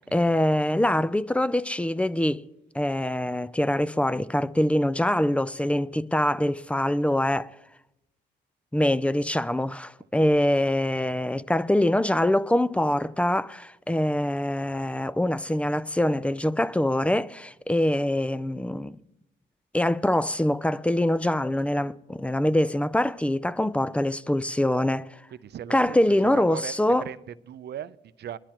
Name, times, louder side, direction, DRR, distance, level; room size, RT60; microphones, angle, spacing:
voice 1, 0.1-2.4 2.7-7.5 8.7-18.9 19.7-25.1 25.7-27.1, left 1 dB, 5° left, 0.4 m, -24 dB
voice 2, 25.3-28.4, right 10 dB, 55° right, 0.6 m, -39 dB
21.5 x 12.0 x 2.9 m
cardioid pair, 90°, 20 cm